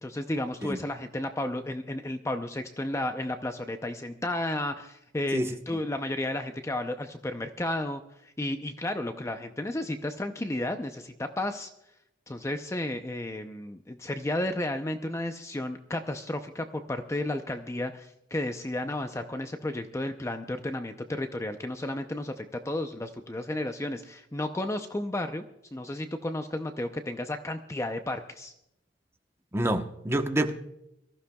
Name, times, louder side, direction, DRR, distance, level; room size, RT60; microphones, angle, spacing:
voice 1, 0.0-11.7 12.3-25.4 25.7-28.5, left 1 dB, 15° left, 7 dB, 0.6 m, -33 dB
voice 2, 29.5-30.5, right 1 dB, 15° right, 5 dB, 1.0 m, -27 dB
23.5 x 14.5 x 2.3 m, 0.83 s
head